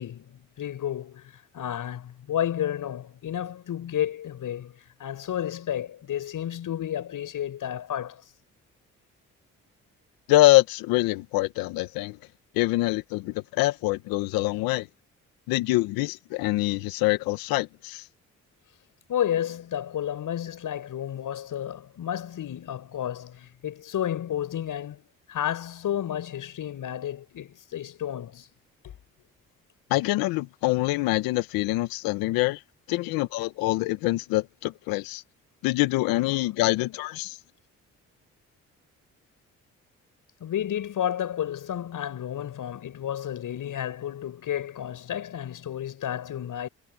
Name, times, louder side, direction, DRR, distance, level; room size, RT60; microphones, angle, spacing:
voice 1, 0.0-4.7 5.0-8.2 19.1-28.5 28.8-28.9 40.4-46.7, left 10 dB, 65° left, 6.6 m, -31 dB
voice 2, 10.3-12.2 12.5-14.9 15.5-18.0 29.9-32.6 32.9-35.2 35.6-37.4, left 19 dB, 85° left, 1.7 m, -25 dB
hypercardioid pair, 50°, 34 cm